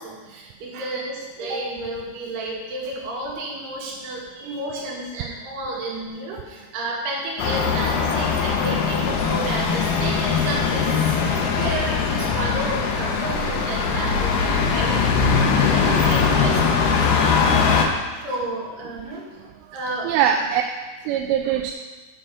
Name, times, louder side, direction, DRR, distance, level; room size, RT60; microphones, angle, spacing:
voice 1, 0.0-11.2 11.4-15.3 15.5-17.1 18.2-19.3 19.7-20.2, right 2 dB, 60° right, -4 dB, 3.5 m, -31 dB
sound 1, 7.4-17.9, left 5 dB, 80° left, 2.2 m, -21 dB
voice 2, 20.0-20.6 21.1-21.7, right 9 dB, 85° right, 4 dB, 3.0 m, -23 dB
7.9 x 6.0 x 6.7 m, 1.3 s
omnidirectional pair, 5.7 m